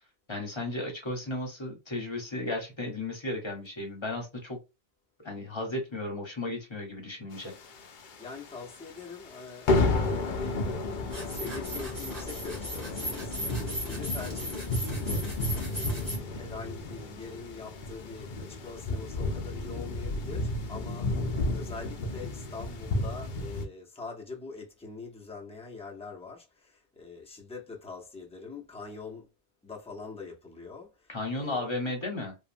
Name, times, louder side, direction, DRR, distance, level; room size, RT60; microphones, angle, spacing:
voice 1, 0.3-4.6 5.2-7.5 31.1-32.4, left 2 dB, 25° left, 0.9 m, -34 dB
sound 1, 7.5-8.4 8.7-8.9 9.2-9.4 9.7-23.7, left 2 dB, 55° left, 0.6 m, -32 dB
voice 2, 7.9-29.3 29.6-31.7, left 4 dB, 5° left, 0.5 m, -44 dB
sound 2, 11.1-16.2, equal, 15° right, 1.6 m, -37 dB
3.0 x 2.1 x 2.5 m
omnidirectional pair, 1.2 m